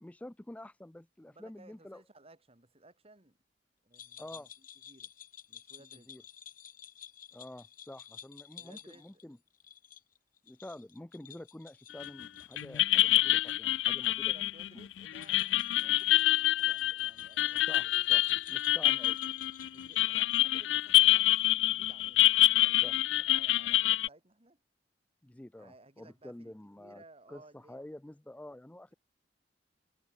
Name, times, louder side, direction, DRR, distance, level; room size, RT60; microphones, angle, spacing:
voice 1, 0.0-2.0 4.2-4.5 6.1-6.2 7.3-9.4 10.4-14.3 17.7-18.2 18.5-19.2 22.8-22.9 25.2-27.0 27.3-28.9, left 1 dB, 10° left, 0.4 m, -48 dB
voice 2, 1.3-3.4 3.8-5.1 5.5-6.1 8.5-9.2 14.2-17.9 19.7-22.9 23.1-24.6 25.6-27.8, right 2 dB, 35° right, 4.0 m, -59 dB
sound 1, 3.9-14.1 14.4-14.5 15.1-20.9, left 9 dB, 50° left, 2.9 m, -52 dB
sound 2, 12.0-12.3 12.6-24.1, left 15 dB, 80° left, 0.4 m, -26 dB
head